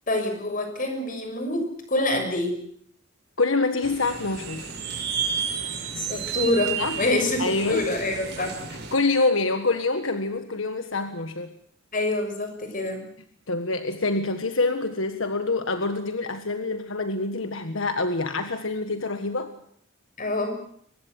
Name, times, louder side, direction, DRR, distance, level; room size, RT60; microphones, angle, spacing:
voice 1, 0.1-2.6 6.0-7.4 7.7-8.6 11.9-13.0 20.2-20.5, left 2 dB, 45° left, 6 dB, 6.5 m, -26 dB
voice 2, 3.4-4.7 6.8-7.0 7.4-7.9 8.9-11.5 13.5-19.5, left 3 dB, 75° left, 8 dB, 1.6 m, -26 dB
sound 1, 3.8-8.9, right 6 dB, 55° right, 5.9 m, -32 dB
24.0 x 20.0 x 8.3 m, 0.65 s
head